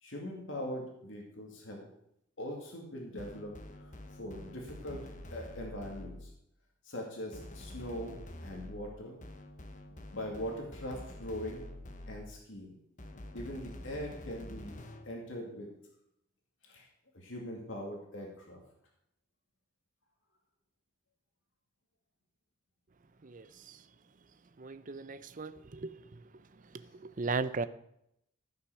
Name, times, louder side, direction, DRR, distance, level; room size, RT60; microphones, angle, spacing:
voice 1, 0.0-1.9 2.4-6.3 6.8-9.2 10.1-11.6 12.1-12.7 13.3-14.7 15.1-15.7 16.6-16.9 17.1-18.6, equal, 75° left, -1 dB, 2.4 m, -41 dB
sound 1, 3.2-6.4 7.3-12.5 13.0-15.2, left 1 dB, 40° left, 1.2 m, -47 dB
voice 2, 23.2-23.8 24.6-25.9 27.2-27.7, right 4 dB, 40° right, 14 dB, 0.6 m, -36 dB
15.0 x 5.9 x 6.2 m, 0.76 s
head